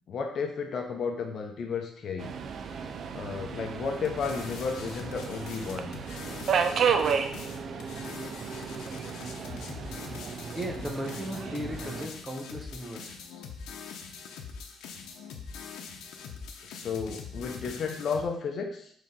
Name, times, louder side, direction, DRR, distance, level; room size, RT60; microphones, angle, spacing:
voice 1, 0.1-2.3 3.1-5.9 16.6-18.9, left 5 dB, 50° left, 3 dB, 0.9 m, -33 dB
Subway metro underground, 2.2-12.1, right 6 dB, 50° right, 0.5 m, -32 dB
sound 1, 4.0-18.2, left 6 dB, 90° left, 0.8 m, -43 dB
voice 2, 10.5-13.2, equal, 10° right, 2 dB, 0.9 m, -36 dB
4.9 x 4.0 x 5.4 m, 0.65 s
cardioid pair, 145°, 0 cm